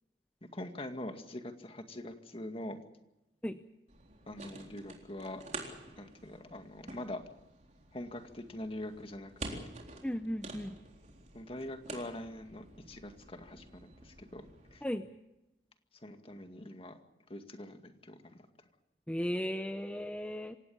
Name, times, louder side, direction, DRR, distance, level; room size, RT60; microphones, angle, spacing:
voice 1, 0.5-2.8 4.3-5.4 6.0-7.2 7.9-9.7 11.3-14.8 16.0-17.0 17.3-18.4, left 1 dB, 35° left, 6 dB, 2.1 m, -44 dB
sound 1, 3.9-14.8, right 2 dB, 40° right, 3.9 m, -49 dB
voice 2, 10.0-10.7 14.8-15.0 19.1-20.6, equal, 5° left, 8 dB, 0.7 m, -35 dB
27.5 x 17.5 x 7.1 m, 0.94 s
head